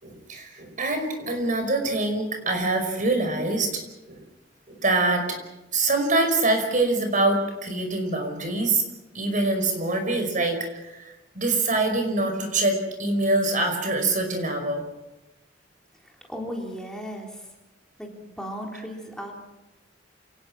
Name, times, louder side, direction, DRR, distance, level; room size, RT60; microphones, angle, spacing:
voice 1, 0.0-3.7 4.1-4.2 4.7-5.4 5.7-8.8 9.1-14.8, right 2 dB, 45° right, 5 dB, 5.4 m, -24 dB
voice 2, 16.0-17.5 18.0-19.3, equal, 5° left, 0 dB, 3.8 m, -36 dB
28.5 x 18.5 x 6.2 m, 0.99 s
head